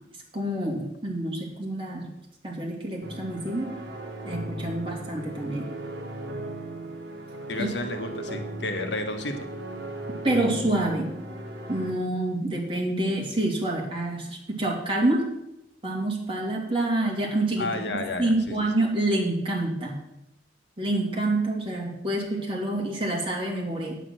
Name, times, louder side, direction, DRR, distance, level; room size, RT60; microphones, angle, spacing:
voice 1, 0.3-2.1 2.4-3.7 4.2-5.7 7.6-7.7 10.2-11.1 11.7-15.3 15.8-20.0 20.8-24.0, right 1 dB, 30° right, -2 dB, 2.8 m, -27 dB
sound 1, 3.0-11.9, right 1 dB, 65° right, 1.7 m, -37 dB
voice 2, 7.5-9.5 17.6-18.5, left 2 dB, 70° left, 6 dB, 1.3 m, -31 dB
9.0 x 8.4 x 6.3 m, 0.84 s
head